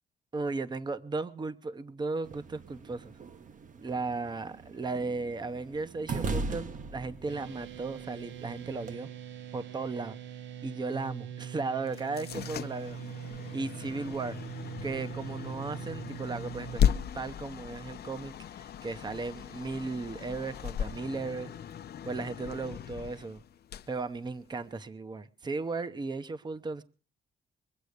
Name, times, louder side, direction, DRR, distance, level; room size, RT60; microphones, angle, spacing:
voice 1, 0.3-3.1 3.8-9.1 9.5-10.2 10.6-13.0 13.5-14.4 14.8-21.5 22.0-23.4 23.9-26.8, right 3 dB, 25° right, 0.8 m, -36 dB
sound 1, 2.2-8.9, right 3 dB, 45° right, 1.1 m, -40 dB
sound 2, 7.3-16.8, right 9 dB, 85° right, 0.8 m, -42 dB
sound 3, 11.9-24.8, left 9 dB, 60° left, 0.7 m, -36 dB
23.0 x 8.2 x 6.6 m
cardioid pair, 145°, 19 cm